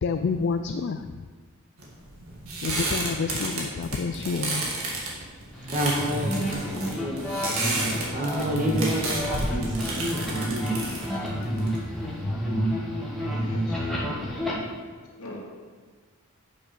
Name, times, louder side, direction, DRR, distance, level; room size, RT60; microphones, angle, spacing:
voice 1, 0.0-1.2 2.6-4.7, left 4 dB, 55° left, 8 dB, 0.3 m, -28 dB
sound 1, 1.8-12.2, right 2 dB, 75° right, 2.0 m, -32 dB
sound 2, 5.5-14.5, equal, ahead, 1.5 m, -29 dB
voice 2, 5.7-7.3 8.1-10.2, equal, 35° right, 0 dB, 1.5 m, -29 dB
voice 3, 13.1-14.2 14.9-15.4, left 1 dB, 90° left, -3 dB, 2.3 m, -44 dB
8.7 x 6.1 x 5.2 m, 1.5 s
head